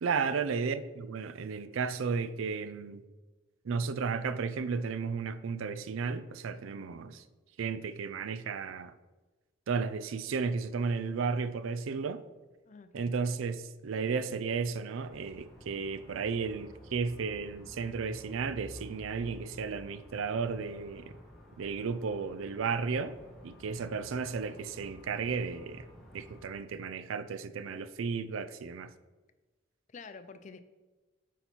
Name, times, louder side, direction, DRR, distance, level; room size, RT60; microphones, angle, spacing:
voice 1, 0.0-3.0 3.6-7.2 7.6-8.9 9.7-12.2 12.9-21.2 21.6-23.1 23.4-25.9 26.1-28.9, right 5 dB, 80° right, 0.4 m, -34 dB
voice 2, 12.7-13.1 29.9-30.6, left 5 dB, 35° left, 0.4 m, -48 dB
sound 1, 15.0-26.5, equal, ahead, 1.2 m, -52 dB
8.4 x 4.0 x 4.4 m
head